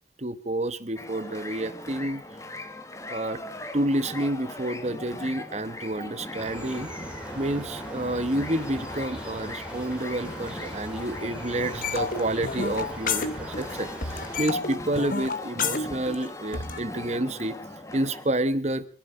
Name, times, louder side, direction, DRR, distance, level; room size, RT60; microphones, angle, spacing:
voice 1, 0.2-2.2 3.1-3.4 3.7-6.9 7.3-17.6 17.9-18.8, right 1 dB, 35° right, 13 dB, 1.1 m, -29 dB
sound 1, 1.0-18.3, left 1 dB, 15° left, 1.6 m, -39 dB
sound 2, 6.4-14.5, equal, 5° right, 3.2 m, -40 dB
sound 3, 11.8-13.8 14.0-16.8, left 4 dB, 50° left, 1.5 m, -30 dB
25.5 x 11.5 x 4.9 m, 0.38 s
head